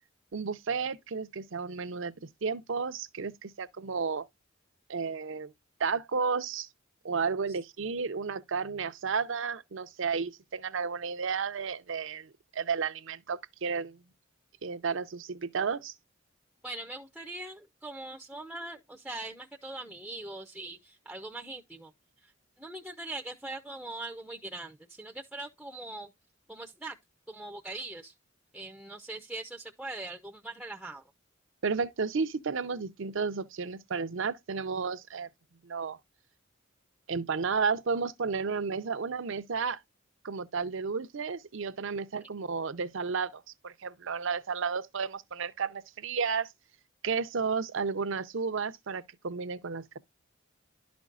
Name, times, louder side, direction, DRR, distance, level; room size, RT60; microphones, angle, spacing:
voice 1, 0.3-2.1 2.4-4.2 4.9-5.5 5.8-6.7 7.0-14.0 14.6-15.9 31.6-35.3 35.6-36.0 37.1-39.8 40.2-46.5 47.0-50.0, right 5 dB, 65° right, 0.6 m, -32 dB
voice 2, 16.6-21.9 22.6-26.1 26.5-27.0 27.3-28.1 28.5-31.0, right 2 dB, 5° right, 0.5 m, -41 dB
11.5 x 5.2 x 2.4 m
head